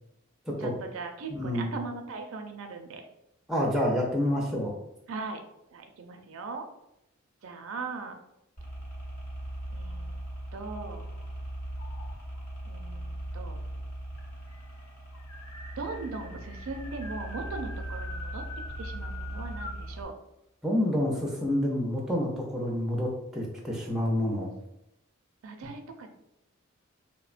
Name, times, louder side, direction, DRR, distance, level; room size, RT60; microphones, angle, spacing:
voice 1, 0.6-3.0 5.1-5.4 5.7-6.6 7.4-8.2 9.7-10.1 10.5-11.1 12.7-13.6 15.8-18.4 18.8-20.1 25.4-26.1, right 4 dB, 70° right, 5 dB, 0.4 m, -39 dB
voice 2, 1.3-1.7 3.5-4.7 20.6-24.5, left 1 dB, ahead, -2 dB, 0.4 m, -28 dB
sound 1, 8.6-20.0, right 1 dB, 40° left, 0.7 m, -39 dB
sound 2, 9.8-11.3 11.8-12.4 13.4-13.5 13.8-13.9 14.2-19.9, left 2 dB, 80° left, 0.5 m, -45 dB
3.1 x 2.1 x 2.4 m, 0.83 s
head